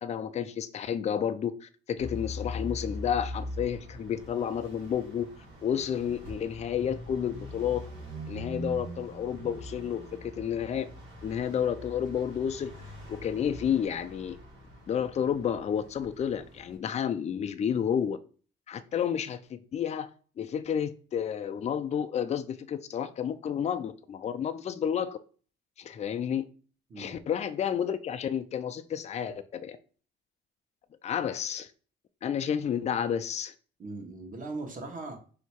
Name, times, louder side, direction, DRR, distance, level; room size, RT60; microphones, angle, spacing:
voice 1, 0.0-5.3 5.6-7.8 8.3-10.9 11.2-12.7 13.1-14.4 14.9-18.2 18.7-20.1 20.4-25.2 25.8-26.5 27.0-29.8 31.0-31.7 32.2-33.5, left 8 dB, 35° left, 0.4 m, -31 dB
sound 1, 2.0-16.7, left 1 dB, 90° right, 1.7 m, -42 dB
voice 2, 33.8-35.2, right 3 dB, 40° right, 1.2 m, -39 dB
3.2 x 2.8 x 4.5 m
cardioid pair, 90°, 20 cm